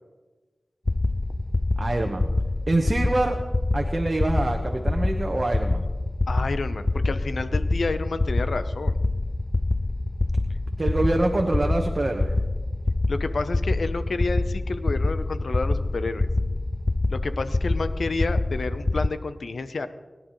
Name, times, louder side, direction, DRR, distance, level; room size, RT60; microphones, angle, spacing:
sound 1, 0.9-19.1, left 2 dB, 40° left, 0.4 m, -26 dB
voice 1, 1.8-2.3 2.7-3.4 3.7-5.9 10.8-12.3, right 2 dB, 45° right, 2 dB, 1.2 m, -25 dB
voice 2, 6.3-8.9 13.1-16.3 17.1-19.9, left 3 dB, 80° left, 10 dB, 0.8 m, -30 dB
22.0 x 10.5 x 3.2 m, 1.3 s
cardioid pair, 45°, 0 cm